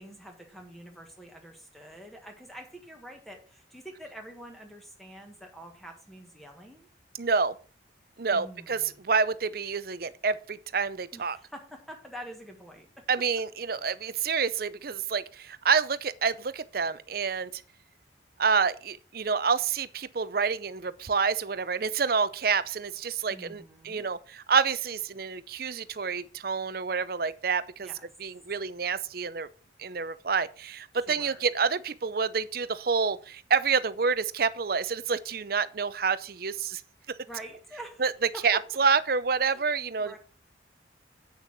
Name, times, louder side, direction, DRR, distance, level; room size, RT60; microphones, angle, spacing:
voice 1, 0.0-6.9 8.3-9.0 11.1-13.3 13.8-13.9 23.3-24.1 27.8-28.1 30.9-31.5 37.3-38.0 38.3-38.6 39.4-39.6 40.0-40.2, equal, ahead, 1.5 m, -46 dB
voice 2, 7.2-7.6 8.2-11.4 13.1-17.6 18.4-27.9 28.2-29.5 29.8-36.8 38.0-38.1 38.4-40.2, right 5 dB, 50° right, 0.6 m, -28 dB
8.0 x 6.6 x 6.0 m
head